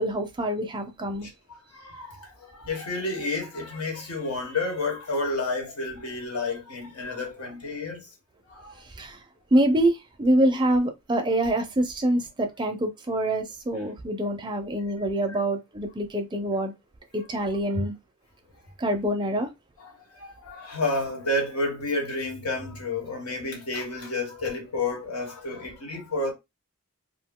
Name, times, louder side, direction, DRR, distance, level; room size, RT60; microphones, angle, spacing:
voice 1, 0.0-1.3 9.0-9.2 9.5-16.7 17.1-18.0 18.8-19.5, right 1 dB, 20° right, 0.4 m, -25 dB
voice 2, 1.2-8.1 8.4-8.8 15.3-15.4 17.7-17.9 19.8-26.3, left 2 dB, 80° left, 1.2 m, -31 dB
2.5 x 2.2 x 3.6 m
head